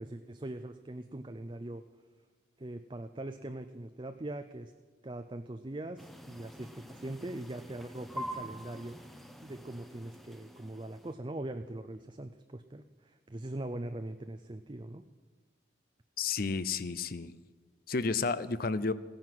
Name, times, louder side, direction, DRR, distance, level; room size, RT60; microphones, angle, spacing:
voice 1, 0.0-1.8 2.6-4.7 5.0-9.0 9.4-15.0, right 1 dB, 25° right, 8 dB, 0.5 m, -41 dB
sound 1, 6.0-11.1, equal, ahead, 0.9 m, -46 dB
voice 2, 16.2-17.3 17.9-18.9, left 4 dB, 50° left, 16 dB, 0.6 m, -31 dB
16.0 x 10.5 x 7.7 m, 1.5 s
head